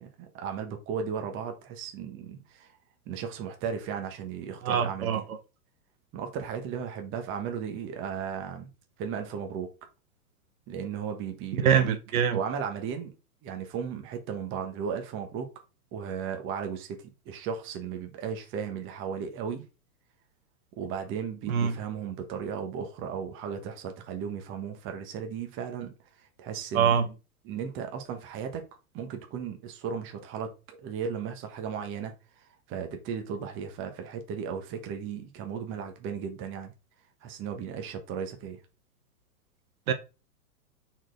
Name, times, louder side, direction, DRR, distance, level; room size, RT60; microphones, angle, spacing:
voice 1, 0.0-2.7 3.1-5.3 6.1-8.7 9.0-9.7 10.7-12.0 12.3-13.1 13.4-15.5 15.9-19.6 20.8-27.1 27.4-28.7 28.9-36.7 37.2-38.6, right 7 dB, 25° right, 1.4 m, -35 dB
voice 2, 4.6-5.2 11.6-12.4 21.5-21.7 26.7-27.0 39.9-40.0, right 8 dB, 65° right, 1.4 m, -24 dB
6.1 x 4.4 x 3.9 m
hypercardioid pair, 140°, 46 cm